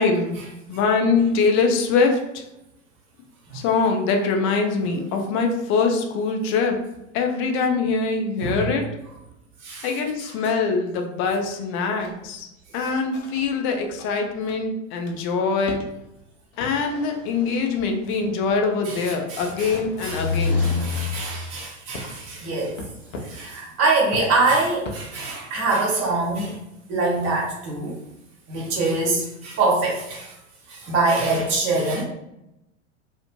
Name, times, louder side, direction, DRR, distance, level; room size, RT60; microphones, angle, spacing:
voice 1, 0.0-2.4 3.5-6.8 7.1-8.8 9.8-12.5 12.7-15.8 16.6-20.7, left 4 dB, 35° left, 4 dB, 0.5 m, -23 dB
sound 1, 12.0-12.2 12.7-13.4 13.7-13.8 14.0-14.1 14.5-14.6 15.1-15.2 15.7-15.9 16.6-18.6 19.0-19.1 19.4-21.3 21.9-22.3 22.8-23.4 24.1-25.0, left 4 dB, 75° left, 0.7 m, -29 dB
voice 2, 19.3-19.7 20.0-22.8 23.2-26.5 26.9-28.0 28.5-30.3 30.7-32.0, right 3 dB, 45° right, -2 dB, 1.1 m, -24 dB
2.7 x 2.1 x 2.9 m, 0.89 s
hypercardioid pair, 90°, 38 cm